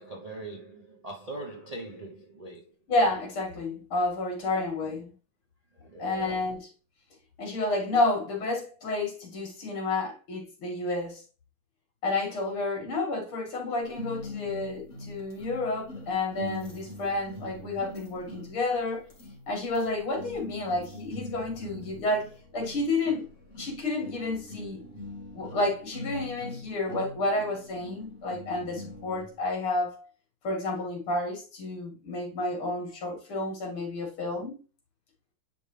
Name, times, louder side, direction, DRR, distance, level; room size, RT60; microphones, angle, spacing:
voice 1, 0.0-2.6 4.8-4.9 5.8-6.4, right 2 dB, 60° right, 0.4 m, -41 dB
voice 2, 2.9-5.1 6.0-6.7 7.4-11.2 12.0-19.1 19.5-23.3 23.6-24.8 25.3-30.1 30.4-34.6, left 2 dB, 75° left, 3.2 m, -30 dB
sound 1, 13.9-29.4, left 2 dB, 35° left, 2.2 m, -43 dB
9.9 x 3.7 x 3.3 m
omnidirectional pair, 2.4 m